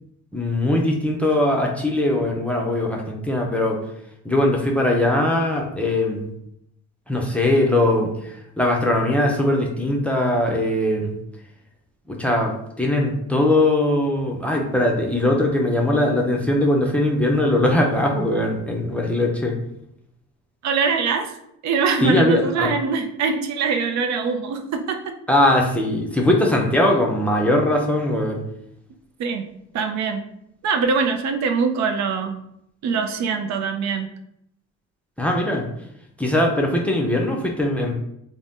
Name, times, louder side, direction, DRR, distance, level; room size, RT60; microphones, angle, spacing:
voice 1, 0.3-3.8 4.2-6.3 7.1-11.2 12.1-19.6 22.0-22.7 25.3-28.4 35.2-35.6 36.2-37.9, left 1 dB, 5° left, 0 dB, 0.5 m, -20 dB
voice 2, 20.6-21.3 21.6-25.1 29.2-29.5 29.7-30.2 30.6-32.4 32.8-34.1, right 5 dB, 65° right, 6 dB, 0.4 m, -23 dB
2.6 x 2.0 x 3.5 m, 0.76 s
cardioid pair, 90°, 30 cm